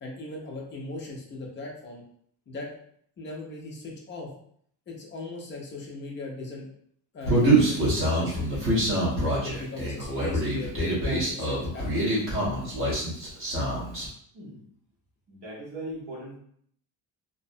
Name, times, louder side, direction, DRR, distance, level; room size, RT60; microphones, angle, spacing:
voice 1, 0.0-2.0 2.5-2.7 3.2-4.3 4.9-6.7 7.1-9.1 9.4-12.1, left 2 dB, 30° left, -1 dB, 0.3 m, -39 dB
Human voice, 7.3-14.1, right 1 dB, 30° right, 0.8 m, -25 dB
voice 2, 14.3-14.7 15.3-16.4, right 1 dB, 65° right, -4 dB, 1.1 m, -39 dB
2.6 x 2.0 x 2.5 m, 0.64 s
cardioid pair, 180°, 46 cm